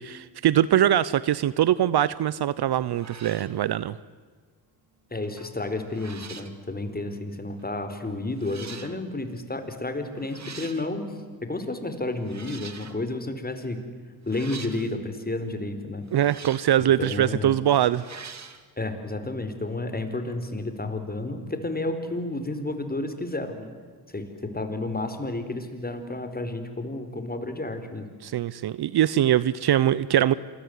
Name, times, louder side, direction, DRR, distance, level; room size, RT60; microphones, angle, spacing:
voice 1, 0.0-4.0 16.1-18.0 28.2-30.3, right 11 dB, 50° right, 19 dB, 0.9 m, -22 dB
sound 1, 2.9-3.6 5.2-5.5 5.9-6.6 7.6-7.7 8.4-9.0 10.2-10.9 12.2-13.0 14.3-15.0 16.1-16.8 17.9-18.6, right 5 dB, 35° right, 2.5 m, -43 dB
voice 2, 5.1-11.1 11.4-13.8 14.3-16.1 17.0-17.5 18.8-23.7 24.1-28.1, left 2 dB, 20° left, 9 dB, 4.6 m, -31 dB
27.5 x 22.0 x 9.7 m, 1.5 s
supercardioid pair, 60°, 49 cm